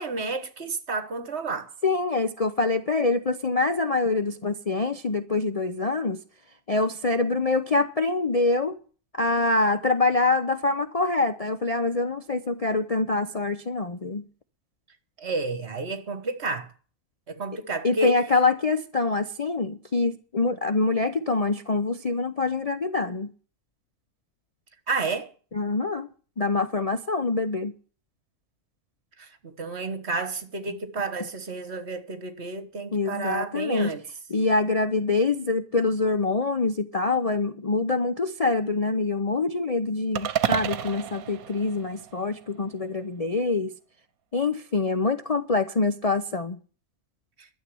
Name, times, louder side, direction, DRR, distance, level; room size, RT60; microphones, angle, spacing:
voice 1, 0.0-1.7 15.2-16.7 17.3-18.2 24.9-25.3 29.2-34.0, right 2 dB, 50° right, 1.7 m, -30 dB
voice 2, 1.8-6.2 6.7-8.8 9.1-14.2 17.8-23.3 25.5-26.1 26.4-27.7 30.7-30.8 32.9-33.9 34.3-43.7 44.3-46.6, left 3 dB, 35° left, 0.6 m, -25 dB
sound 1, 40.1-42.5, right 10 dB, 80° right, 1.3 m, -30 dB
12.0 x 7.6 x 9.8 m
omnidirectional pair, 1.5 m